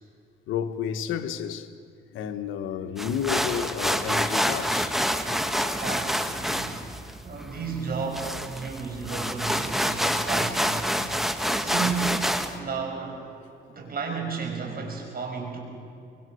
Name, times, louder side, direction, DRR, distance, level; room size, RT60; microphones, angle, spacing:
voice 1, 0.5-1.7 2.1-4.9 5.3-5.8, left 8 dB, 90° left, 1.4 m, -31 dB
sound 1, 3.0-12.5, equal, ahead, 1.5 m, -27 dB
voice 2, 5.8-10.9 11.5-13.4 13.7-15.6, right 5 dB, 50° right, 6.2 m, -33 dB
24.5 x 23.0 x 6.4 m
cardioid pair, 90°, 20 cm